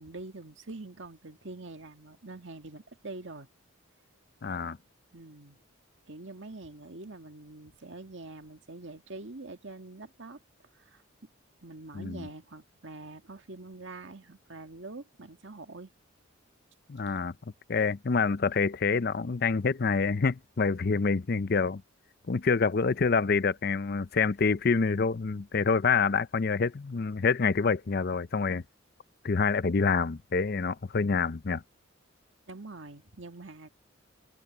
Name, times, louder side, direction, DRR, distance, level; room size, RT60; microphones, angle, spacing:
voice 1, 0.0-3.5 5.1-5.6 6.1-10.4 10.7-11.0 11.6-15.9 32.5-33.7, right 2 dB, 65° right, 1.8 m, -45 dB
voice 2, 4.4-4.8 11.9-12.3 16.9-17.3 17.7-21.8 22.3-28.6 29.2-31.6, left 4 dB, 45° left, 0.5 m, -27 dB
head